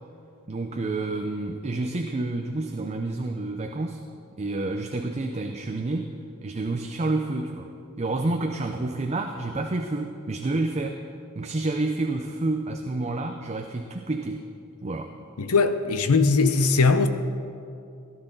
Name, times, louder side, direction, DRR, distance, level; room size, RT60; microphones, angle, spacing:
voice 1, 0.5-4.0 4.4-6.1 6.4-7.7 8.0-11.0 11.3-14.4 14.8-15.2, right 2 dB, 30° right, 0.6 m, -29 dB
voice 2, 15.4-17.1, left 4 dB, 75° left, 0.8 m, -20 dB
17.0 x 12.0 x 3.9 m
head